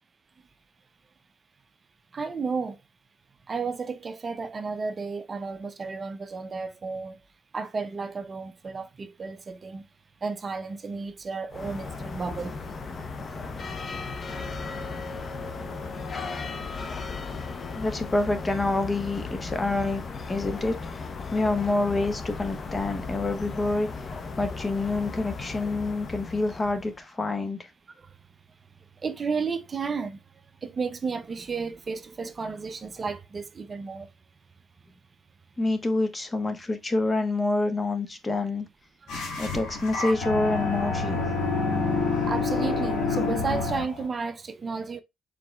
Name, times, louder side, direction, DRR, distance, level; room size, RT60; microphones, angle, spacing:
voice 1, 2.1-2.8 3.5-7.2 7.5-9.8 10.2-13.6 16.6-16.7 28.0-28.1 29.0-30.2 30.6-34.1 39.0-39.2 42.3-45.0, right 4 dB, 35° right, 0.6 m, -33 dB
sound 1, 11.5-27.0, left 4 dB, 45° left, 0.8 m, -36 dB
voice 2, 17.8-20.0 20.3-23.9 24.4-27.7 35.6-38.7 39.4-41.2, left 2 dB, 25° left, 1.0 m, -27 dB
sound 2, 39.1-44.0, left 4 dB, 90° left, 1.9 m, -27 dB
4.9 x 3.9 x 2.2 m
cardioid pair, 90°, 0 cm